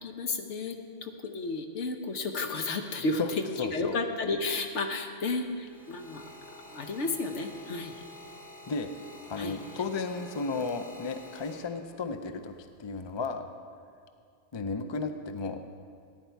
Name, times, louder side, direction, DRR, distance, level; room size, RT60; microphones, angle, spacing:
voice 1, 0.0-6.2 6.7-7.9 9.4-9.6, left 3 dB, 70° left, 5 dB, 1.2 m, -32 dB
voice 2, 3.6-4.0 8.7-8.9 9.3-13.5 14.5-15.6, left 4 dB, 40° left, 8 dB, 0.4 m, -34 dB
sound 1, 5.2-12.1 12.9-13.2, left 1 dB, 5° left, 3.8 m, -49 dB
15.0 x 9.5 x 4.6 m, 2.3 s
omnidirectional pair, 1.3 m